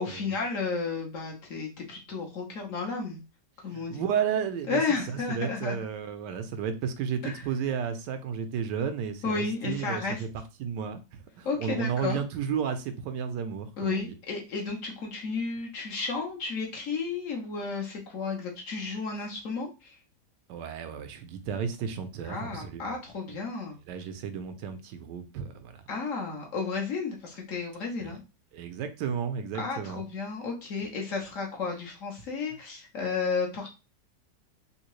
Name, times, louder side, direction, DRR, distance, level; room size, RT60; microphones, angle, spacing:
voice 1, 0.0-3.2 3.6-4.0 4.7-5.8 7.2-7.4 9.2-10.2 11.4-12.2 13.8-20.0 22.2-23.8 25.9-28.2 29.5-33.7, left 4 dB, 55° left, 1.1 m, -32 dB
voice 2, 3.7-4.8 5.1-10.3 10.6-11.0 11.4-14.1 20.5-23.0 23.9-25.8 28.0-28.1 28.5-30.0, right 7 dB, 85° right, 1.2 m, -33 dB
3.6 x 2.8 x 3.0 m
omnidirectional pair, 1.8 m